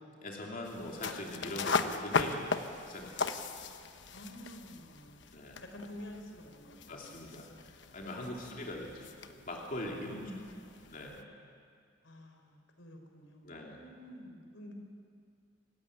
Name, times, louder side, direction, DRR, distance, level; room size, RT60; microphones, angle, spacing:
voice 1, 0.2-2.5 2.9-3.1 5.3-5.6 6.9-9.1 9.5-10.3 10.9-11.2 13.4-13.8, left 1 dB, 45° left, -1 dB, 2.9 m, -41 dB
sound 1, 0.6-11.2, left 4 dB, 70° left, 1.1 m, -38 dB
voice 2, 4.1-5.3 5.6-7.7 8.1-8.7 10.0-10.7 12.0-14.7, equal, 90° left, 4 dB, 3.8 m, -49 dB
26.5 x 15.0 x 10.0 m, 2.2 s
head